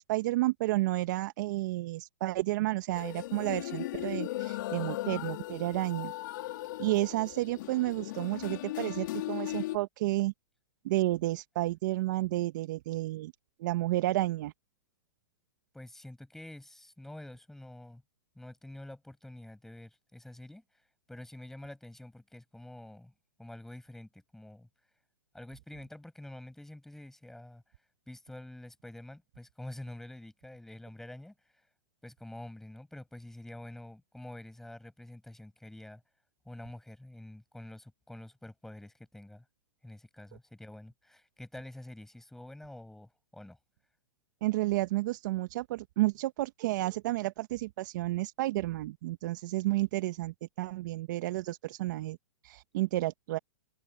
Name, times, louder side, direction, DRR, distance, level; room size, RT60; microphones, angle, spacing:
voice 1, 0.0-6.1 6.8-10.3 10.8-13.3 13.6-14.5 44.4-52.2 52.4-53.4, right 17 dB, 50° right, 1.4 m, -31 dB
sound 1, 2.9-9.8, left 16 dB, 55° left, 3.6 m, -37 dB
voice 2, 15.7-18.0 18.4-23.1 23.4-24.7 25.3-27.6 28.1-31.7 32.0-36.0 36.5-39.5 39.8-43.6, left 1 dB, 5° left, 6.9 m, -47 dB
hypercardioid pair, 130°, 13 cm